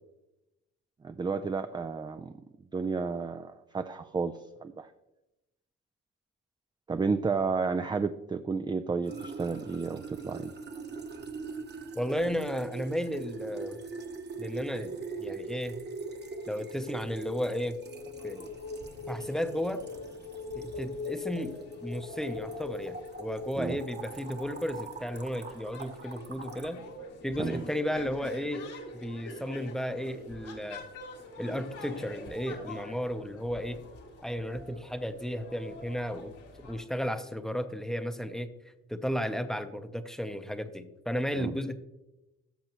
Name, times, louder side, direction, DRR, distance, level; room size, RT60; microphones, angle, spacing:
voice 1, 1.0-2.4 2.7-4.3 4.6-4.9 6.9-10.5 23.6-23.8 27.4-27.6 41.4-41.6, right 4 dB, 15° right, 9 dB, 0.3 m, -31 dB
sound 1, 9.0-26.7, right 4 dB, 35° right, 1.1 m, -43 dB
voice 2, 12.0-13.8 14.4-15.7 16.5-17.8 18.2-18.5 19.1-19.9 20.5-26.8 27.2-30.8 31.4-33.8 34.2-38.5 38.9-41.8, equal, ahead, 9 dB, 0.7 m, -34 dB
sound 2, 15.9-24.6, left 4 dB, 55° left, 1.4 m, -43 dB
sound 3, 18.2-36.8, left 2 dB, 85° left, 2.3 m, -48 dB
13.5 x 6.2 x 3.0 m, 0.95 s
cardioid pair, 90°, 30 cm